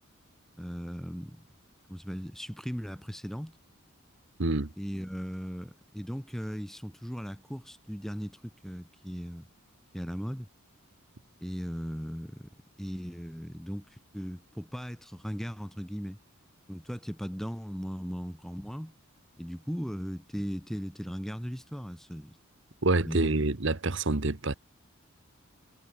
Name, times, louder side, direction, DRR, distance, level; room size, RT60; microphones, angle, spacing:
voice 1, 0.6-1.4 1.9-3.6 4.8-9.4 9.9-10.5 11.4-12.5 12.8-16.2 16.7-18.9 19.4-22.4 23.0-23.4, equal, ahead, 1.2 m, -38 dB
voice 2, 4.4-4.7 22.8-24.5, right 2 dB, 55° right, 1.2 m, -27 dB
head